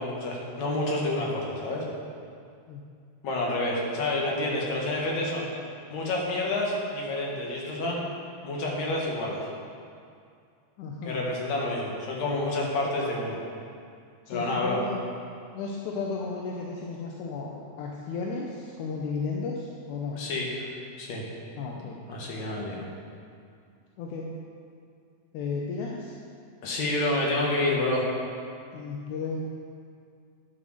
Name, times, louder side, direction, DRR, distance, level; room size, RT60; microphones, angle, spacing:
voice 1, 0.0-1.9 3.2-5.5 5.9-8.0 8.4-9.4 11.0-13.4 14.3-14.8 20.1-20.7 21.0-21.2 21.8-22.8 26.6-28.0, left 2 dB, 65° left, -2 dB, 2.8 m, -29 dB
voice 2, 10.8-11.2 14.3-15.1 15.5-20.3 21.6-22.0 22.4-22.6 24.0-24.3 25.3-26.2 28.7-29.4, left 4 dB, 85° left, -1 dB, 2.2 m, -34 dB
10.5 x 6.1 x 6.4 m, 2.3 s
omnidirectional pair, 3.4 m